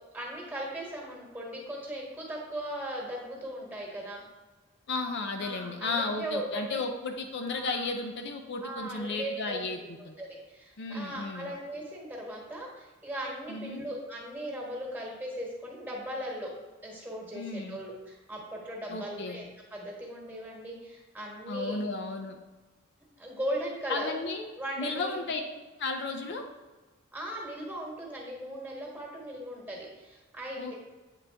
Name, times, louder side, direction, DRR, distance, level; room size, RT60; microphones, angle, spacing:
voice 1, 0.1-4.2 5.4-6.8 7.5-7.9 8.6-9.6 10.0-16.5 16.8-21.9 23.2-24.2 24.6-25.2 27.1-30.8, right 1 dB, 10° right, -2 dB, 1.4 m, -38 dB
voice 2, 4.9-9.8 10.1-10.2 10.8-11.5 13.5-13.9 17.3-17.8 18.9-19.4 21.5-22.4 23.9-24.5 24.8-25.4 25.8-26.4 30.6-30.7, left 3 dB, 55° left, 4 dB, 0.5 m, -34 dB
8.2 x 3.9 x 3.4 m, 1.2 s
head